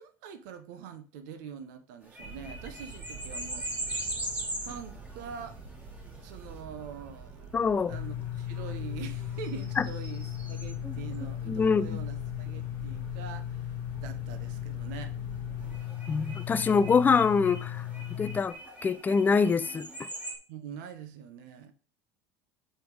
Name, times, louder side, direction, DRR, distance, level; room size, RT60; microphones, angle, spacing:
voice 1, 0.0-3.8 4.6-5.6 6.2-7.5 7.9-15.1 20.5-21.7, right 7 dB, 85° right, 0.8 m, -44 dB
sound 1, 2.0-11.3 15.6-20.4, right 1 dB, 15° right, 1.5 m, -41 dB
sound 2, 2.2-15.8, right 4 dB, 35° right, 1.7 m, -47 dB
voice 2, 7.5-8.0 9.8-9.9 11.5-12.0 16.1-17.8 18.2-18.6 18.8-20.1, left 5 dB, 20° left, 0.4 m, -25 dB
sound 3, 7.9-18.4, left 13 dB, 70° left, 1.0 m, -36 dB
7.8 x 3.5 x 4.7 m
supercardioid pair, 120°, 9 cm